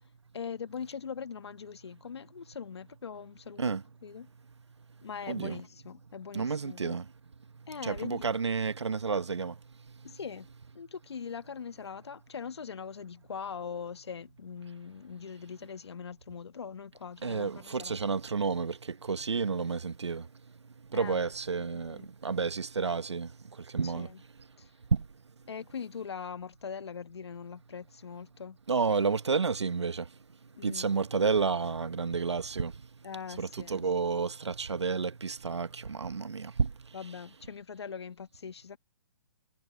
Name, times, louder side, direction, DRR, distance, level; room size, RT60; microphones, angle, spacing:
voice 1, 0.3-3.7 4.0-4.3 5.0-7.0 7.7-8.3 10.0-10.5 10.7-18.0 20.9-21.2 21.7-22.1 23.8-24.2 24.6-24.7 25.5-28.6 30.6-30.9 33.0-33.8 36.9-38.8, left 6 dB, 70° left, 1.4 m, -41 dB
voice 2, 5.3-5.6 6.3-7.0 7.8-9.5 17.2-18.7 19.1-20.2 20.9-22.0 22.2-23.3 23.7-24.1 24.9-25.0 28.7-30.0 30.6-32.7 33.4-36.7, right 5 dB, 80° right, 1.1 m, -30 dB
figure-of-eight pair, 125°, 14 cm